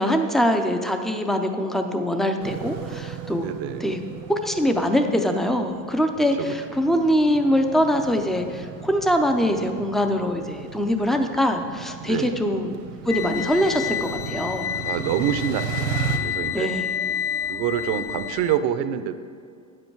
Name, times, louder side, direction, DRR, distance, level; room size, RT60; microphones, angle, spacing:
voice 1, 0.0-3.5 3.8-4.0 4.3-12.8 13.0-14.7 16.5-16.9, equal, ahead, 5 dB, 0.4 m, -23 dB
sound 1, 2.4-16.2, right 7 dB, 75° right, 1.3 m, -36 dB
voice 2, 3.4-3.9 6.2-6.6 12.0-12.4 14.8-15.9 16.2-16.7 17.5-19.2, right 10 dB, 55° right, 11 dB, 0.7 m, -26 dB
sound 2, 13.1-18.6, left 9 dB, 60° left, 0.8 m, -29 dB
9.2 x 7.8 x 4.6 m, 2.4 s
supercardioid pair, 115°, 46 cm